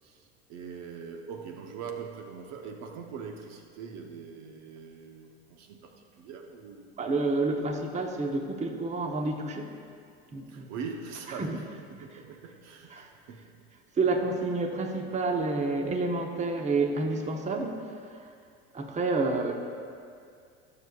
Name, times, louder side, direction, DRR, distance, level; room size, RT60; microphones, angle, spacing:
voice 1, 0.0-6.9 10.5-13.5, right 6 dB, 60° right, 3 dB, 1.0 m, -42 dB
voice 2, 7.0-9.8 10.3-10.7 11.4-11.5 12.9-13.1 14.0-18.3 18.7-19.5, right 3 dB, 20° right, 3 dB, 1.0 m, -29 dB
17.5 x 6.8 x 2.4 m, 2.3 s
hypercardioid pair, 95°, 31 cm